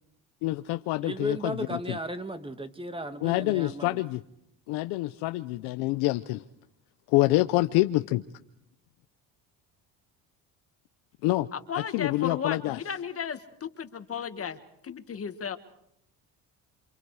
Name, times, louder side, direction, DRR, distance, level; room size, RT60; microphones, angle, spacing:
voice 1, 0.4-2.0 3.2-4.2 4.7-6.4 7.1-8.2 11.2-11.5 11.9-12.8, left 18 dB, 90° left, 11 dB, 0.8 m, -26 dB
voice 2, 1.0-4.0, right 1 dB, 15° right, 9 dB, 1.9 m, -35 dB
voice 3, 11.5-15.6, left 7 dB, 35° left, 9 dB, 1.7 m, -35 dB
28.5 x 26.5 x 4.9 m, 0.76 s
cardioid pair, 105°, 38 cm